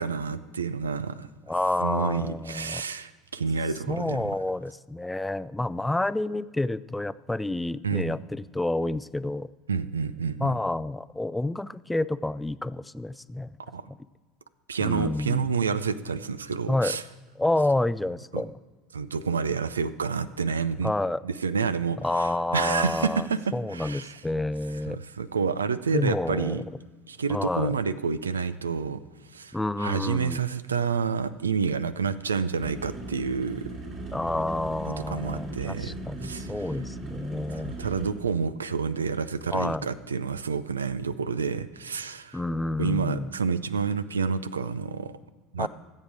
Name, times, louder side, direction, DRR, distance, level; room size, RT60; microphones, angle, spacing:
voice 1, 0.0-1.3 1.8-4.2 7.8-8.1 9.7-10.5 13.6-13.8 14.7-17.0 18.3-18.4 18.9-20.9 21.2-23.4 23.7-24.2 24.9-26.6 27.1-29.0 29.3-33.7 34.9-36.0 36.2-36.5 37.6-42.4 42.8-45.1 45.5-45.7, right 5 dB, 90° right, 15 dB, 0.4 m, -29 dB
voice 2, 1.5-2.8 3.9-9.5 10.4-13.5 13.9-14.0 14.8-15.5 16.7-17.0 17.4-18.5 20.8-21.2 22.0-23.3 23.5-25.0 25.9-26.6 27.3-27.8 29.5-30.4 34.1-37.7 39.5-39.9 42.3-43.3 45.6-45.7, left 2 dB, 10° left, 17 dB, 0.3 m, -29 dB
sound 1, 32.6-38.1, right 2 dB, 45° right, 3.1 m, -38 dB
15.0 x 7.5 x 4.9 m, 1.4 s
hypercardioid pair, 75°, 0 cm